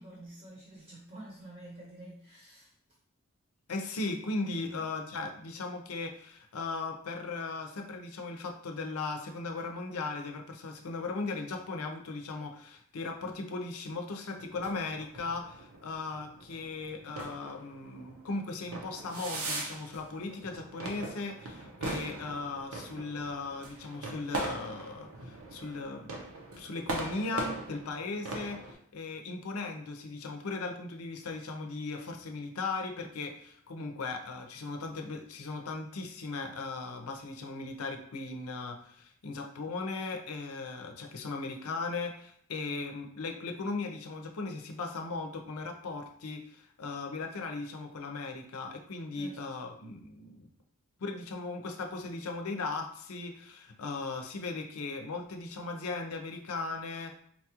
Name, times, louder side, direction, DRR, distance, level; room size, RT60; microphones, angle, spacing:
voice 1, 0.0-2.7 4.5-4.8 49.1-49.4, right 1 dB, 35° right, -3 dB, 0.7 m, -48 dB
voice 2, 3.7-26.2 26.6-50.5 51.0-57.2, left 3 dB, 90° left, 4 dB, 0.6 m, -37 dB
sound 1, 14.4-28.7, right 2 dB, 80° right, 0.7 m, -41 dB
4.1 x 2.3 x 2.9 m, 0.64 s
head